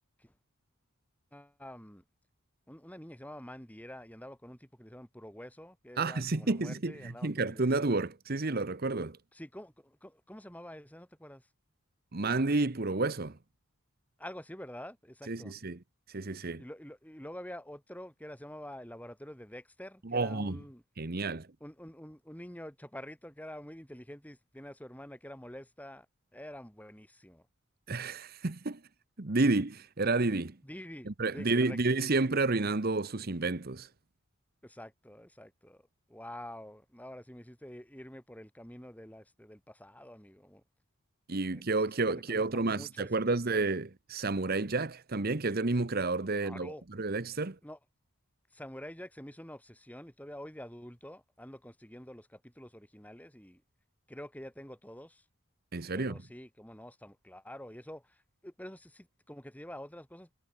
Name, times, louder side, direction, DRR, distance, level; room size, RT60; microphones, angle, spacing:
voice 1, 1.3-2.0 2.7-7.7 9.3-11.5 14.2-15.5 16.6-20.8 21.6-26.1 26.3-27.4 30.6-32.4 34.6-40.6 41.5-43.4 46.3-46.8 47.6-47.8 48.5-53.6 54.1-55.2 55.9-60.3, left 1 dB, 5° left, 4.2 m, -47 dB
voice 2, 6.0-9.2 12.1-13.4 15.3-15.8 16.1-16.6 20.0-20.6 21.0-21.5 27.9-28.8 29.2-30.6 31.1-33.9 41.3-47.6 55.7-56.2, right 3 dB, 45° right, 1.0 m, -30 dB
head